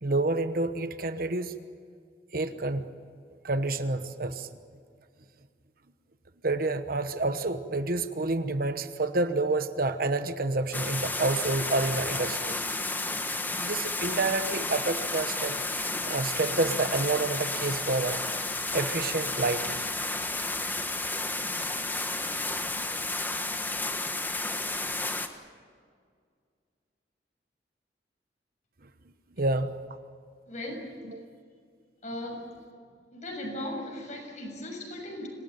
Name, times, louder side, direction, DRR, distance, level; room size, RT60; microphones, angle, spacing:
voice 1, 0.0-1.5 2.3-2.9 3.4-4.5 6.4-12.6 13.5-15.6 16.0-18.2 18.7-19.8 29.4-29.8 31.1-31.3, right 2 dB, 55° right, 10 dB, 1.1 m, -28 dB
sound 1, 10.7-25.3, left 2 dB, 10° left, 1.3 m, -32 dB
voice 2, 30.5-30.9 32.0-32.5 33.1-35.3, left 1 dB, 40° left, 2 dB, 6.6 m, -37 dB
26.5 x 18.5 x 9.2 m, 2.1 s
head